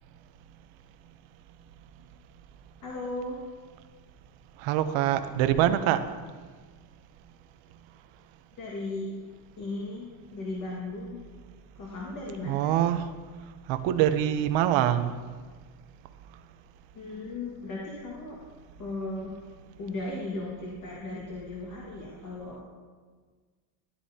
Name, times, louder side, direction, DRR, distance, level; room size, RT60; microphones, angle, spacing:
voice 1, 2.8-3.4 8.6-9.1 9.6-11.2 11.8-12.8 16.9-18.4 18.8-19.3 19.8-22.6, left 2 dB, 45° left, -4 dB, 1.9 m, -36 dB
voice 2, 4.6-6.1 12.4-13.1 13.7-15.1, right 11 dB, 85° right, 10 dB, 0.9 m, -24 dB
14.0 x 11.0 x 2.8 m, 1.5 s
cardioid pair, 155°, 45 cm